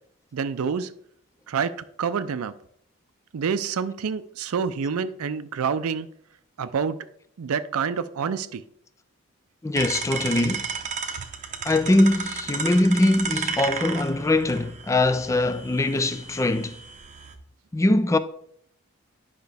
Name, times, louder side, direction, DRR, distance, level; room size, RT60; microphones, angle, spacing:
voice 1, 0.3-0.9 1.5-1.7 2.0-2.5 3.3-6.1 6.6-7.0 7.4-8.6 11.2-11.3, right 6 dB, 85° right, 0.4 m, -27 dB
voice 2, 9.6-10.7 11.6-16.8 17.7-18.2, left 2 dB, 15° left, 0.3 m, -22 dB
sound 1, 9.7-17.3, right 5 dB, 35° right, 0.8 m, -33 dB
10.5 x 5.7 x 3.4 m
head